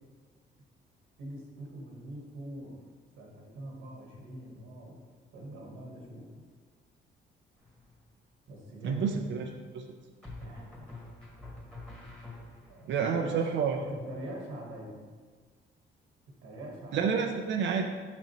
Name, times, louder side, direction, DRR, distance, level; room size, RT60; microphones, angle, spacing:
voice 1, 1.2-2.8 3.2-5.0 5.3-6.2 8.5-9.1 10.4-10.9 11.5-11.6 12.7-13.5 13.8-15.0 16.4-17.1, right 1 dB, 85° right, -1 dB, 1.4 m, -44 dB
sound 1, 7.6-8.1 10.2-12.9, left 2 dB, 5° left, 1.7 m, -47 dB
voice 2, 8.8-9.8 12.9-13.8 16.9-17.8, right 6 dB, 70° right, 3 dB, 0.6 m, -29 dB
5.9 x 5.3 x 3.0 m, 1.5 s
cardioid pair, 90°, 20 cm